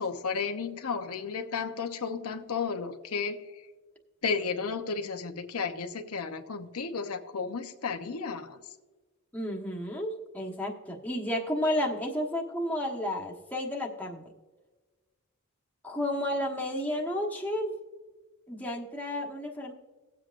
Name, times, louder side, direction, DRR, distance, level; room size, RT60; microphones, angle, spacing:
voice 1, 0.0-3.4 4.2-8.6, left 5 dB, 80° left, 5 dB, 0.9 m, -33 dB
voice 2, 9.3-14.2 15.8-17.7 18.5-19.7, left 1 dB, 10° left, -1 dB, 1.2 m, -32 dB
18.0 x 7.8 x 2.5 m, 1.3 s
head